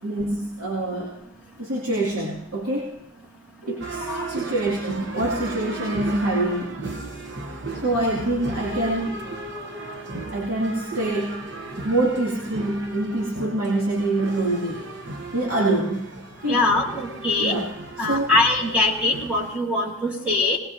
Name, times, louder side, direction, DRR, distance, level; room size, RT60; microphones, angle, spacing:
voice 1, 0.0-1.2 1.6-2.9 3.6-6.8 7.8-9.3 10.3-11.4 11.8-14.9 15.3-16.1 16.4-16.6 17.4-17.7 18.0-18.3, right 2 dB, 80° right, -3 dB, 2.5 m, -25 dB
sound 1, 3.8-19.6, right 2 dB, 50° right, 1.0 m, -35 dB
voice 2, 16.5-17.5 18.0-20.6, left 2 dB, 5° right, -2 dB, 1.5 m, -22 dB
20.0 x 20.0 x 2.8 m, 0.81 s
head